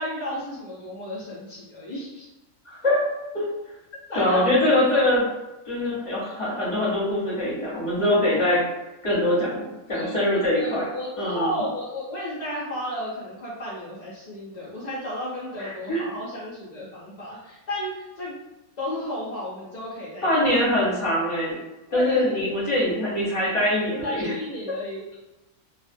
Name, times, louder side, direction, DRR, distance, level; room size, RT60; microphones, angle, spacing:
voice 1, 0.0-2.3 4.1-4.4 9.9-10.2 10.5-18.4 18.8-20.3 21.9-22.3 23.9-25.1, left 1 dB, 65° left, -8 dB, 0.4 m, -33 dB
voice 2, 2.6-3.0 3.3-3.4 4.1-5.2 5.7-8.6 9.0-10.9 11.2-11.6 15.6-16.0 20.2-21.6 21.9-24.3, left 1 dB, 30° left, -7 dB, 0.7 m, -23 dB
2.4 x 2.1 x 2.5 m, 1.0 s
omnidirectional pair, 1.5 m